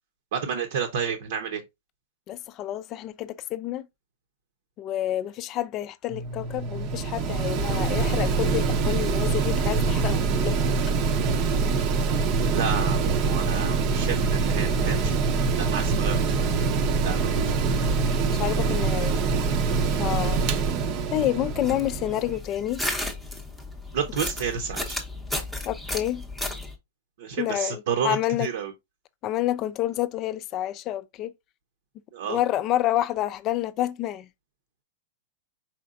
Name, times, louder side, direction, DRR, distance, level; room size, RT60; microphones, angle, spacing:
voice 1, 0.3-1.6 12.5-15.1 15.6-16.4 17.0-17.6 19.9-20.1 23.9-25.0 27.2-28.7 32.1-32.4, right 7 dB, 60° right, 0.9 m, -30 dB
voice 2, 2.3-3.9 4.8-10.5 18.2-19.2 20.0-20.4 21.1-22.8 25.6-26.3 27.4-28.5 29.2-31.3 32.3-34.3, left 13 dB, 30° left, 0.4 m, -28 dB
Mechanical fan, 6.1-22.4, right 4 dB, 35° right, 0.6 m, -24 dB
Digging Sand, 21.4-26.8, left 1 dB, ahead, 0.8 m, -34 dB
4.5 x 4.3 x 2.5 m
supercardioid pair, 160°, 0 cm